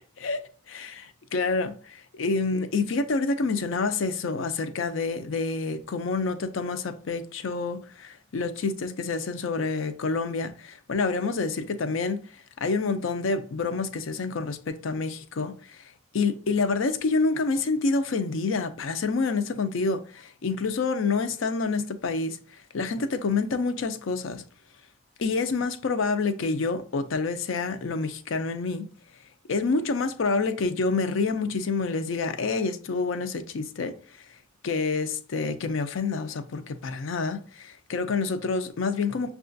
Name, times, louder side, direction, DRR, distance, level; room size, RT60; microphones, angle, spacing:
voice 1, 0.7-12.2 12.6-15.8 16.1-22.4 22.7-24.4 25.2-28.8 29.5-33.9 34.6-39.3, left 4 dB, 65° left, 0.5 m, -28 dB
6.5 x 2.3 x 2.5 m
head